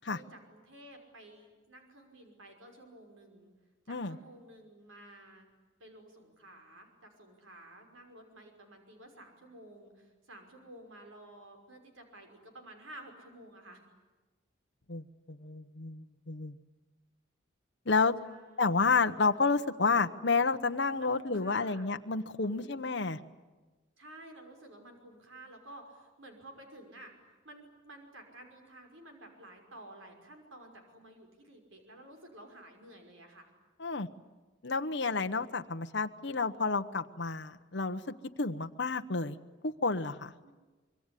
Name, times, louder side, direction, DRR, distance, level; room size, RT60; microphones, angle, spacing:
voice 1, 0.0-3.5 3.9-5.5 5.8-13.8 18.2-18.9 21.0-21.9 22.4-22.8 24.0-27.1 27.4-33.5 40.4-40.5, right 1 dB, 85° right, 4 dB, 5.7 m, -52 dB
voice 2, 14.9-16.5 17.9-18.1 18.6-23.2 33.8-34.1 34.6-38.0 38.4-39.4 39.6-40.3, left 4 dB, 60° left, 6 dB, 1.0 m, -30 dB
25.0 x 24.0 x 9.9 m, 1.2 s
head